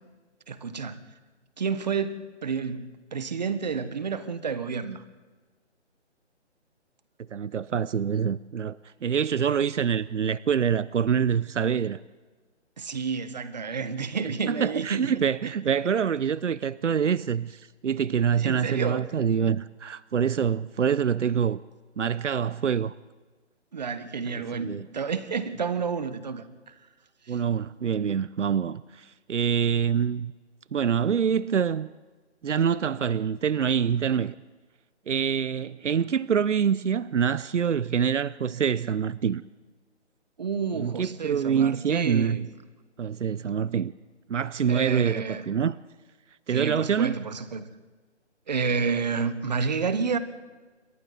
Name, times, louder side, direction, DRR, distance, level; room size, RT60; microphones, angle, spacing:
voice 1, 0.5-1.0 1.6-5.0 12.8-15.1 15.4-15.5 18.4-19.1 23.7-26.7 27.3-27.4 40.4-42.5 44.7-45.5 46.5-47.7 48.5-50.2, right 5 dB, 35° right, 1.3 m, -30 dB
voice 2, 7.3-12.0 14.5-21.6 22.0-22.9 24.3-24.9 27.3-30.3 30.7-31.9 32.4-34.3 35.1-39.4 40.7-42.4 43.0-43.9 44.3-45.8 46.5-47.2, right 7 dB, 80° right, 0.7 m, -25 dB
28.0 x 24.5 x 4.1 m
hypercardioid pair, 170°, 36 cm